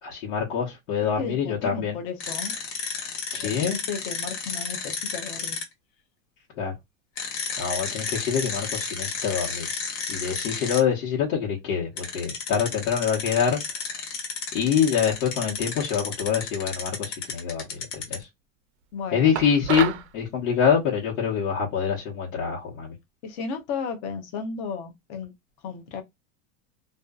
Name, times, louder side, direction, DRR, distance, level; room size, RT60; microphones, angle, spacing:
voice 1, 0.0-2.0 3.3-3.8 6.6-6.7 7.6-9.7 10.1-13.6 14.5-18.3 19.1-22.9, left 7 dB, 90° left, 1.2 m, -25 dB
voice 2, 1.0-2.5 3.4-5.6 18.9-19.4 23.2-25.3 25.6-26.0, left 5 dB, 35° left, 0.5 m, -34 dB
sound 1, 2.2-5.6 7.2-10.8 12.0-18.2, left 5 dB, 70° left, 1.2 m, -32 dB
sound 2, 19.3-20.1, right 11 dB, 65° right, 0.5 m, -29 dB
2.5 x 2.3 x 2.3 m
supercardioid pair, 170°, 40 cm